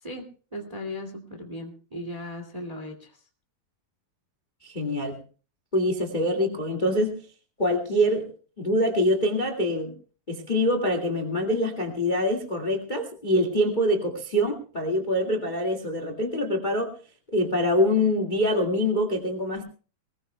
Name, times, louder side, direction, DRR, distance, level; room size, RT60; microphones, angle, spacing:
voice 1, 0.0-3.2, left 1 dB, 20° right, 4 dB, 1.1 m, -37 dB
voice 2, 4.6-5.2 5.7-7.2 7.6-8.3 8.6-9.9 10.3-16.9 17.3-19.6, left 1 dB, 30° left, 1 dB, 0.8 m, -25 dB
22.0 x 19.5 x 2.2 m, 0.38 s
omnidirectional pair, 4.5 m